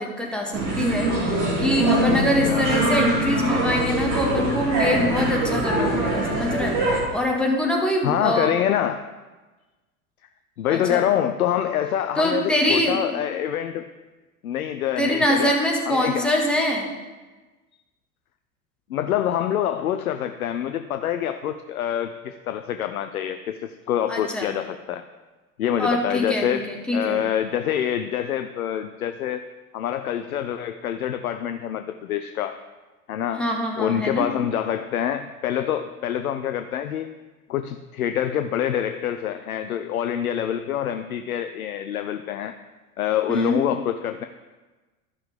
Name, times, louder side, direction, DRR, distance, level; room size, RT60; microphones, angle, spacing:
voice 1, 0.0-6.8 7.1-8.5 10.7-11.0 12.2-13.2 15.0-16.9 24.1-24.5 25.8-27.2 33.3-34.3 43.3-43.6, left 1 dB, ahead, 0 dB, 1.7 m, -24 dB
sound 1, 0.5-7.0, right 2 dB, 40° right, 2.4 m, -23 dB
voice 2, 8.0-9.0 10.6-13.9 14.4-15.5 15.9-16.3 18.9-25.0 25.6-29.4 29.7-32.6 33.1-33.5 33.8-37.2 37.5-42.6 43.0-44.3, left 10 dB, 70° left, 8 dB, 0.6 m, -26 dB
12.5 x 5.7 x 5.0 m, 1.2 s
figure-of-eight pair, 80°, 44 cm